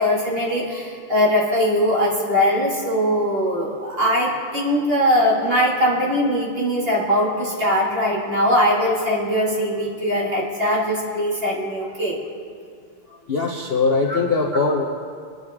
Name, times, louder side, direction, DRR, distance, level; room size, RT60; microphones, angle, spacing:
voice 1, 0.0-12.2 14.1-14.2, equal, 25° right, -4 dB, 2.3 m, -21 dB
voice 2, 13.3-14.8, left 4 dB, 60° left, -1 dB, 0.6 m, -21 dB
24.0 x 9.8 x 3.7 m, 2.2 s
omnidirectional pair, 2.4 m